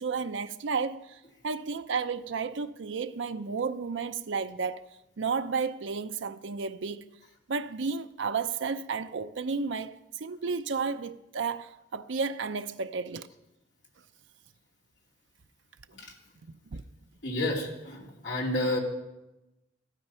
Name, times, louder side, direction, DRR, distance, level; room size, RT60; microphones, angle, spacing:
voice 1, 0.0-4.9 5.2-7.1 7.5-13.3 16.7-16.8, right 5 dB, 80° right, 0.6 m, -32 dB
voice 2, 17.2-18.8, left 1 dB, 65° left, 2.9 m, -30 dB
14.0 x 12.0 x 5.6 m
head